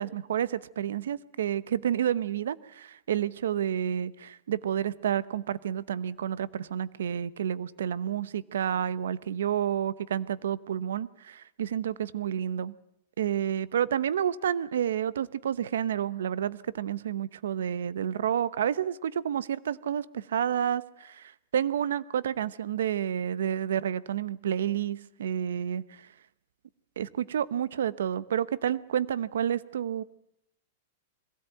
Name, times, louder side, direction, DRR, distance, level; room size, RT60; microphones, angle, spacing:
voice 1, 0.0-12.7 13.2-26.1 27.0-30.0, right 9 dB, 90° right, 18 dB, 0.9 m, -30 dB
22.0 x 16.5 x 9.0 m, 0.75 s
supercardioid pair, 165°, 0 cm